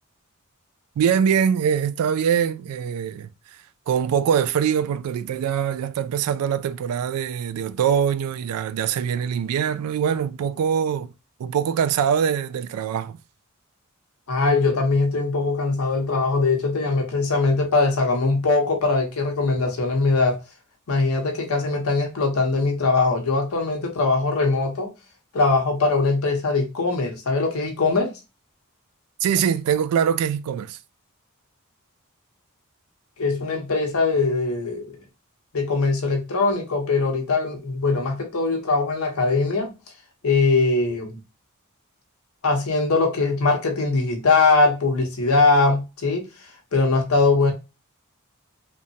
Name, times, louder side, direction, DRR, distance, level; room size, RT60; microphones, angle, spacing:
voice 1, 1.0-3.3 3.9-11.1 11.4-13.2 29.2-30.8, right 8 dB, 80° right, 0.3 m, -23 dB
voice 2, 14.3-20.4 20.9-24.9 25.3-28.1 33.2-35.0 35.5-39.7 40.2-41.2 42.4-46.3 46.7-47.5, left 3 dB, 70° left, 0.7 m, -21 dB
2.9 x 2.1 x 2.6 m
head